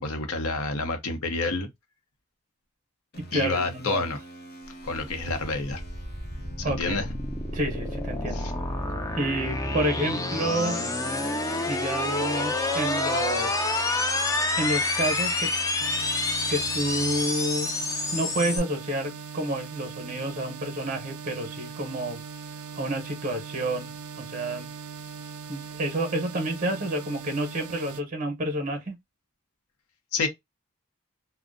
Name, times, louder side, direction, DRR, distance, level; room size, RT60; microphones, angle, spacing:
voice 1, 0.0-1.7 3.3-4.2 4.8-5.8 6.6-7.1 8.3-8.5 30.1-30.3, left 3 dB, 80° left, 0.7 m, -28 dB
sound 1, 3.1-17.2, right 2 dB, 45° left, 0.9 m, -45 dB
voice 2, 3.2-4.0 6.6-7.1 7.5-8.4 9.1-10.8 11.7-13.7 14.6-15.5 16.5-17.7 18.1-22.2 22.7-23.9 24.2-24.7 25.5-29.0, right 1 dB, 35° right, 0.6 m, -29 dB
sound 2, 4.8-18.6, left 2 dB, 15° left, 0.3 m, -28 dB
sound 3, 15.8-28.0, right 5 dB, 75° right, 0.4 m, -40 dB
2.5 x 2.1 x 2.4 m
head